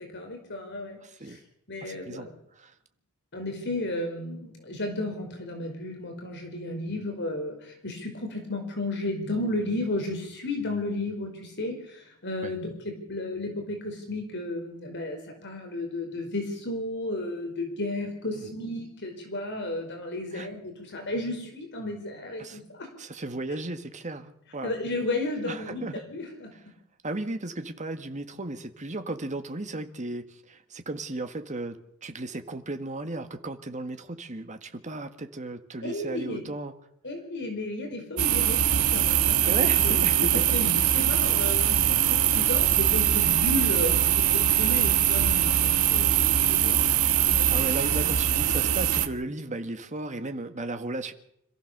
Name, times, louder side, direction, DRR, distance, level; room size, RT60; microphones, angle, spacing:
voice 1, 0.0-1.4 1.7-2.3 3.3-22.9 24.6-26.5 35.8-36.5 37.0-42.0 42.3-43.9 44.2-46.8 47.4-47.5, left 2 dB, 55° left, 3 dB, 5.1 m, -33 dB
voice 2, 1.0-1.4 1.8-2.3 2.6-2.7 12.4-12.5 18.3-18.5 20.3-20.5 22.4-22.6 23.0-24.7 25.5-26.0 26.5-26.6 27.0-36.7 39.5-40.3 47.5-51.1, right 2 dB, 35° right, 7 dB, 1.8 m, -35 dB
sound 1, 38.2-49.1, right 10 dB, 85° right, 1.6 m, -22 dB
27.0 x 15.0 x 6.8 m, 0.73 s
head